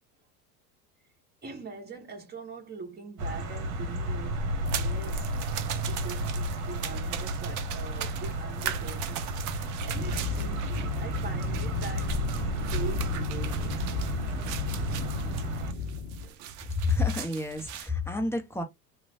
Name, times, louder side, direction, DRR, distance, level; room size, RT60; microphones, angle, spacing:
voice 1, 1.4-5.3 5.8-9.3 9.8-13.9 16.2-16.5, right 4 dB, 20° right, 1.2 m, -43 dB
sound 1, 3.2-15.7, right 1 dB, 60° right, 1.0 m, -33 dB
sound 2, 4.7-17.9, right 10 dB, 40° right, 0.5 m, -40 dB
sound 3, 9.9-16.3, left 5 dB, 50° left, 0.7 m, -34 dB
voice 2, 16.8-18.6, left 3 dB, 5° left, 0.6 m, -29 dB
2.9 x 2.2 x 2.7 m
hypercardioid pair, 90°, 47 cm